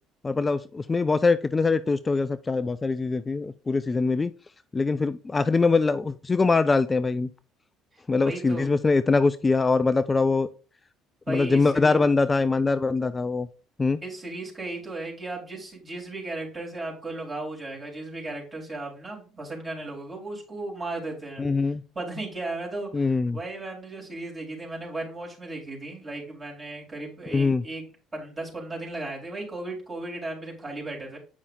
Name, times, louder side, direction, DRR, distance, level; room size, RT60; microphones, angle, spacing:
voice 1, 0.2-4.3 4.7-7.3 8.1-10.5 11.3-13.5 13.8-14.0 21.4-21.8 22.9-23.4 27.3-27.6, left 4 dB, 25° left, 13 dB, 0.3 m, -23 dB
voice 2, 8.2-8.7 11.3-12.0 14.0-21.5 21.9-31.2, right 2 dB, 30° right, -2 dB, 3.6 m, -36 dB
8.4 x 5.4 x 2.6 m, 0.38 s
hypercardioid pair, 55°, 0 cm